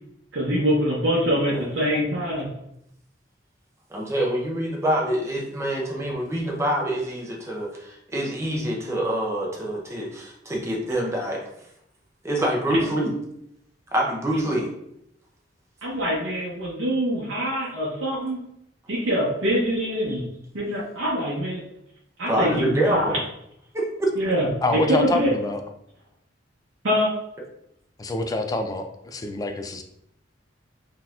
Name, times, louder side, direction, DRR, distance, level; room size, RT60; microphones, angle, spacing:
voice 1, 0.3-2.5 15.8-18.4 18.9-20.3 20.5-21.6 22.2-23.1 24.2-25.3 26.8-27.1, equal, 80° right, -6 dB, 0.8 m, -24 dB
voice 2, 1.5-2.0 3.9-11.4 12.2-13.1 13.9-14.7 20.1-20.2 22.3-23.2 23.7-24.1, right 1 dB, 15° right, -2 dB, 0.7 m, -26 dB
voice 3, 24.6-25.6 28.0-29.8, left 2 dB, 20° left, 6 dB, 0.3 m, -26 dB
3.8 x 2.8 x 2.4 m, 0.77 s
head